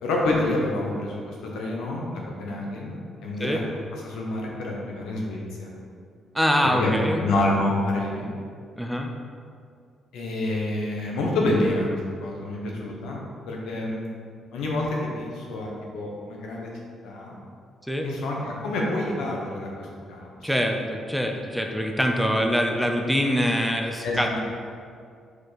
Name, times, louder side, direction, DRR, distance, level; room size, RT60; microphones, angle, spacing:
voice 1, 0.0-3.0 3.2-3.6 4.0-5.7 6.6-8.3 10.1-11.9 12.2-14.0 14.5-16.7 17.0-17.3 18.0-20.5 24.0-24.4, left 2 dB, 85° left, -2 dB, 1.1 m, -28 dB
voice 2, 6.3-7.2 8.8-9.1 17.9-18.1 20.4-24.4, equal, ahead, 2 dB, 0.6 m, -24 dB
4.9 x 4.7 x 4.2 m, 2.2 s
cardioid pair, 90°, 0 cm